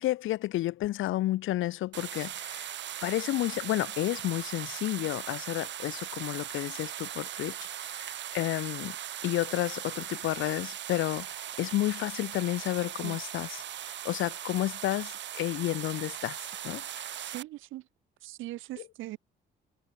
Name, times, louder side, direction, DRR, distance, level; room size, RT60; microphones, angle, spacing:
voice 1, 0.0-2.7 3.0-7.5 7.9-9.0 9.2-13.6 13.9-16.4 16.6-17.1, left 15 dB, 85° left, 1.3 m, -31 dB
sound 1, 1.9-17.4, right 11 dB, 65° right, 1.7 m, -39 dB
voice 2, 17.2-17.8 18.2-19.2, right 16 dB, 90° right, 1.5 m, -40 dB
cardioid pair, 90°, 20 cm